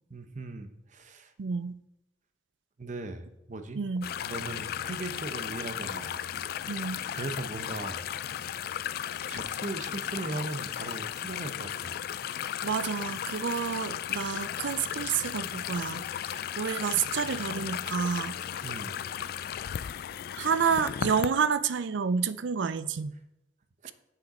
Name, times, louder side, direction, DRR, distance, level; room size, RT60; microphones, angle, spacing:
voice 1, 0.1-1.3 2.8-3.8 4.2-6.2 7.1-8.1 9.3-12.0 18.6-19.0 23.8-23.9, right 2 dB, 40° right, 0.8 m, -38 dB
voice 2, 1.4-1.7 3.8-4.1 6.7-7.0 12.6-18.4 20.4-23.1, right 6 dB, 80° right, 0.4 m, -29 dB
sound 1, 4.0-21.3, left 9 dB, 55° left, 0.3 m, -35 dB
7.5 x 6.3 x 4.1 m
head